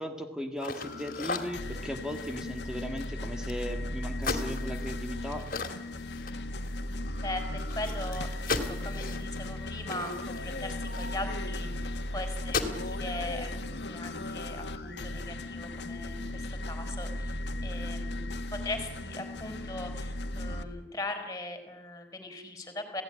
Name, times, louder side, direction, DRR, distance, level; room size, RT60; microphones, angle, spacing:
voice 1, 0.0-5.5, equal, 5° right, 5 dB, 1.8 m, -37 dB
sound 1, 0.6-3.7 4.2-6.9 7.2-7.3 7.6-11.5 11.9-12.1 12.4-12.9, left 4 dB, 50° left, 2.6 m, -37 dB
sound 2, 0.8-20.6, left 1 dB, 80° left, 1.8 m, -36 dB
voice 2, 7.1-17.4 17.6-23.0, left 2 dB, 20° left, 6 dB, 4.9 m, -40 dB
27.5 x 17.0 x 10.0 m, 1.1 s
head